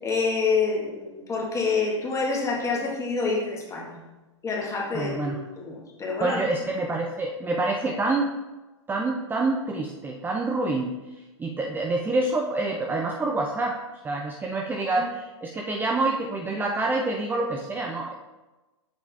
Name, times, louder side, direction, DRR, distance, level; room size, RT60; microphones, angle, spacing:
voice 1, 0.0-4.0 4.4-6.4 15.0-15.1, left 4 dB, 20° left, -1 dB, 1.8 m, -27 dB
voice 2, 4.9-5.4 6.2-8.3 8.9-11.0 11.4-13.8 14.0-18.3, right 2 dB, 10° right, 1 dB, 0.6 m, -27 dB
7.3 x 5.5 x 3.4 m, 1.1 s
hypercardioid pair, 110°, 16 cm